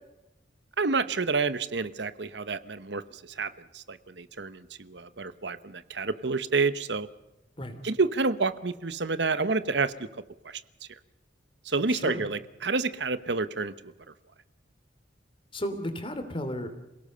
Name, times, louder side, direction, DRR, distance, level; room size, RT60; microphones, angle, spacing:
voice 1, 0.8-7.1 7.8-10.1 10.4-10.6 11.6-13.9, right 4 dB, 65° right, 13 dB, 1.0 m, -29 dB
voice 2, 11.9-12.2 15.5-16.8, equal, 30° left, 8 dB, 3.1 m, -34 dB
27.5 x 18.0 x 6.8 m, 0.98 s
head